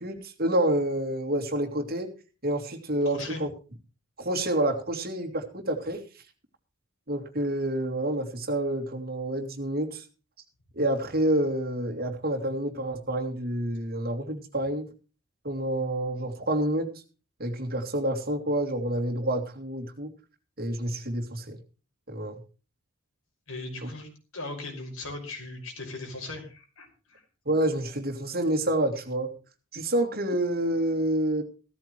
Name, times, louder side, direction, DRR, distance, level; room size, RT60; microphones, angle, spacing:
voice 1, 0.0-2.1 2.4-3.5 4.2-6.0 7.1-10.0 10.7-14.8 15.4-16.9 17.4-20.1 20.6-21.6 22.1-22.4 23.8-23.9 27.4-29.3 29.7-31.4, right 1 dB, 45° right, 3 dB, 2.9 m, -28 dB
voice 2, 3.1-3.4 23.5-27.2, left 2 dB, 85° left, 3 dB, 5.6 m, -39 dB
16.0 x 14.0 x 3.2 m, 0.34 s
head